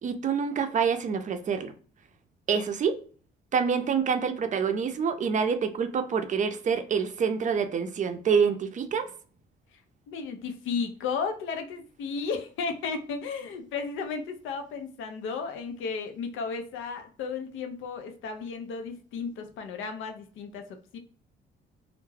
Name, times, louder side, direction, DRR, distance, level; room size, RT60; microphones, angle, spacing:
voice 1, 0.0-1.7 2.5-3.0 3.5-9.0, right 6 dB, 40° right, 8 dB, 0.5 m, -26 dB
voice 2, 10.1-21.0, left 5 dB, 85° left, 6 dB, 0.5 m, -34 dB
2.2 x 2.1 x 3.1 m, 0.41 s
cardioid pair, 90°, 20 cm